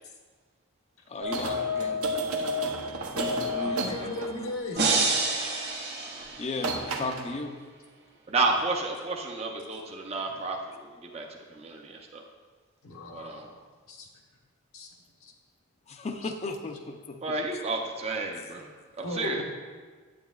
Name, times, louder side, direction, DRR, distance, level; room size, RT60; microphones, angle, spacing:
voice 1, 1.1-2.2 3.1-3.8 6.4-7.6 15.9-17.6 18.3-18.5 18.8-18.9, left 3 dB, 30° left, 6 dB, 0.4 m, -36 dB
sound 1, 1.2-4.6 6.2-6.3 6.6-7.3, left 1 dB, 85° right, 0.7 m, -30 dB
voice 2, 3.6-4.9 10.3-10.4 12.8-13.6 13.9-14.1 14.7-14.9 15.2-15.3 16.2-16.3 19.0-19.4, left 1 dB, 75° left, 1 dB, 1.1 m, -37 dB
sound 2, 4.8-6.9, right 3 dB, 50° right, 1.3 m, -28 dB
voice 3, 8.3-12.2 13.1-13.4 17.2-18.7 19.0-19.4, right 3 dB, 30° right, 1 dB, 0.5 m, -31 dB
8.9 x 8.3 x 2.3 m, 1.5 s
head